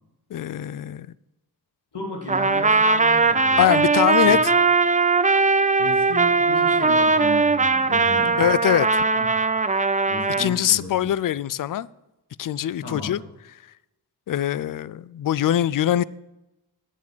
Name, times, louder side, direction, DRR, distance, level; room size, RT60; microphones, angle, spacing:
voice 1, 0.3-1.1 3.6-4.4 8.4-9.0 10.4-11.9 12.4-13.2 14.3-16.0, left 11 dB, 55° left, 0.4 m, -22 dB
voice 2, 1.9-3.8 4.2-4.3 5.8-8.5 9.1-9.3 10.1-11.1 12.8-13.2, left 2 dB, 85° left, 2.7 m, -34 dB
Trumpet, 2.3-10.5, right 4 dB, 20° right, 0.6 m, -19 dB
9.1 x 7.3 x 6.1 m
cardioid pair, 55°, 40 cm